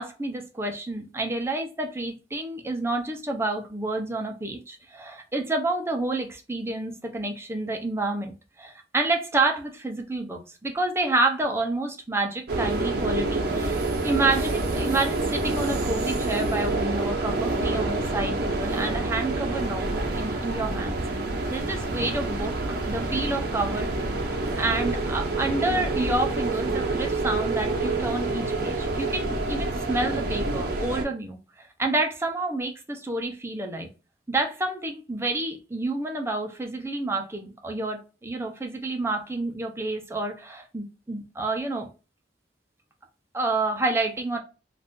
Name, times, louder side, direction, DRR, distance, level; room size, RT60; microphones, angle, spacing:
voice 1, 0.0-21.0 21.5-22.5 22.9-24.2 24.6-33.9 34.3-41.9 43.3-44.4, right 2 dB, 15° right, 0.6 m, -29 dB
sound 1, 12.5-31.0, right 2 dB, 60° right, 0.7 m, -27 dB
2.5 x 2.4 x 3.5 m
head